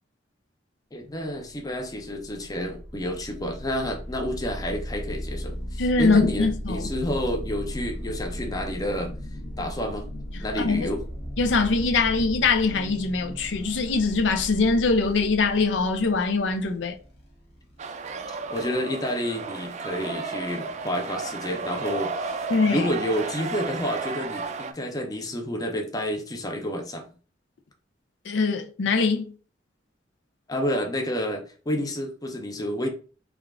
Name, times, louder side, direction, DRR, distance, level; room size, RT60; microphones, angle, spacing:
voice 1, 0.9-9.1 9.6-10.1 10.4-11.0 18.5-27.1 30.5-32.9, equal, 20° left, 0.6 m, -29 dB
sound 1, 1.6-18.7, equal, 60° left, 1.1 m, -37 dB
voice 2, 5.8-6.9 10.3-10.9 11.4-16.9 22.5-22.9 28.3-29.3, left 4 dB, 80° left, 0.5 m, -23 dB
sound 2, 17.8-24.7, right 4 dB, 40° right, 0.4 m, -33 dB
3.4 x 2.4 x 3.4 m
head